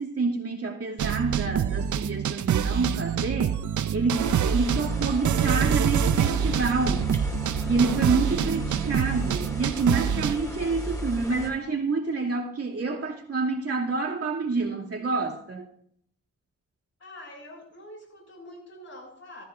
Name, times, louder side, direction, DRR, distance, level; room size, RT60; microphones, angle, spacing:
voice 1, 0.0-3.6 3.9-7.1 7.6-15.7, right 4 dB, 50° right, 2.5 m, -28 dB
sound 1, 1.0-10.3, right 9 dB, 70° right, 0.6 m, -26 dB
sound 2, 4.1-11.5, equal, 10° left, 2.5 m, -34 dB
voice 2, 8.4-8.7 17.0-19.4, left 1 dB, 60° left, 5.3 m, -46 dB
14.5 x 13.5 x 2.6 m
cardioid pair, 90°, 31 cm